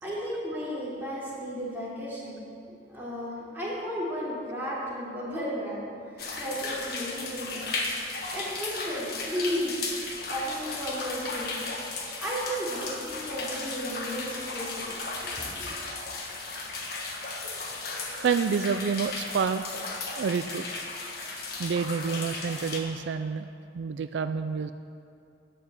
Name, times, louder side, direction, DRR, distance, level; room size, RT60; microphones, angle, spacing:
voice 1, 0.0-2.4 2.9-5.8 6.4-7.7 8.0-9.7 10.3-11.5 12.2-14.9 15.2-15.7, equal, 10° right, -8 dB, 3.3 m, -34 dB
sound 1, 6.2-22.8, left 3 dB, 60° left, 1.3 m, -35 dB
voice 2, 18.2-19.7 20.1-20.8 21.6-23.5 23.7-24.7, right 6 dB, 75° right, 10 dB, 0.4 m, -28 dB
10.0 x 6.7 x 8.4 m, 2.5 s
head